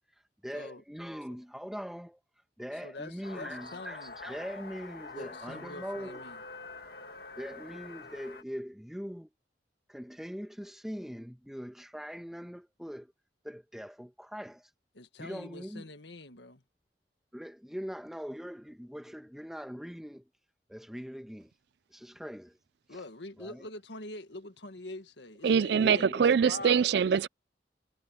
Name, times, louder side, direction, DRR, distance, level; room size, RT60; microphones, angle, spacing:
voice 1, 0.4-2.2 2.6-6.2 7.4-9.3 9.9-13.1 13.4-14.6 15.2-15.8 17.3-20.2 20.7-21.5 21.9-22.5 22.9-23.0 23.4-23.6 25.8-26.3, equal, ahead, 1.4 m, -41 dB
voice 2, 2.7-4.2 5.1-6.4 14.9-16.6 22.9-26.9, left 2 dB, 75° left, 1.8 m, -45 dB
sound 1, 3.2-8.4, left 3 dB, 55° left, 2.0 m, -46 dB
voice 3, 25.4-27.3, right 7 dB, 65° right, 0.4 m, -24 dB
head